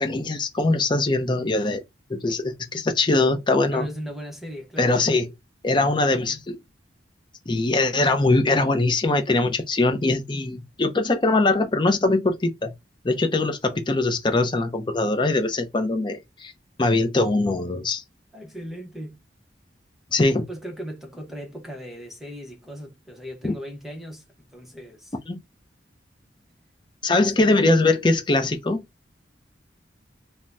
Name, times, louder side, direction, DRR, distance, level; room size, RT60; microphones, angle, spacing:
voice 1, 0.0-1.8 2.1-3.9 4.8-5.3 5.6-6.6 7.5-12.7 13.0-16.5 16.8-18.0 20.1-20.4 23.4-23.5 25.3-25.4 27.0-28.8, left 2 dB, 25° left, 0.6 m, -22 dB
voice 2, 3.7-5.0 18.3-19.2 20.5-25.1, equal, ahead, 0.8 m, -38 dB
2.7 x 2.1 x 3.3 m
head